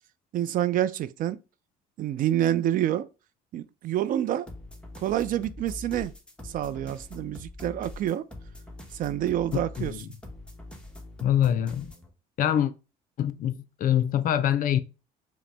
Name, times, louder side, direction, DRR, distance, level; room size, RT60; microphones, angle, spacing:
voice 1, 0.3-1.4 2.0-3.1 3.5-4.5 5.0-6.1 6.4-8.2 8.9-9.9, right 11 dB, 55° right, 0.4 m, -27 dB
sound 1, 4.5-12.1, left 2 dB, 5° left, 0.9 m, -43 dB
voice 2, 9.8-10.1 11.2-11.9 12.4-12.7 13.2-14.8, left 10 dB, 55° left, 0.5 m, -24 dB
4.9 x 2.1 x 3.3 m
supercardioid pair, 90°, 17 cm